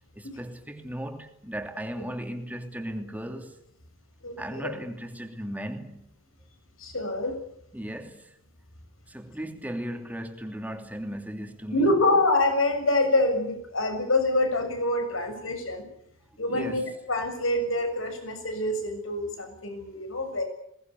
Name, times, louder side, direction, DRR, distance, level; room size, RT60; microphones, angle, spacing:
voice 1, 0.1-3.6 4.4-6.1 7.7-8.3 9.1-12.0 16.5-16.9, equal, 10° right, 2.9 m, -36 dB
voice 2, 4.2-4.7 6.8-7.4 11.7-15.9 16.4-20.4, left 2 dB, 90° left, 6.8 m, -26 dB
21.5 x 19.5 x 9.6 m
head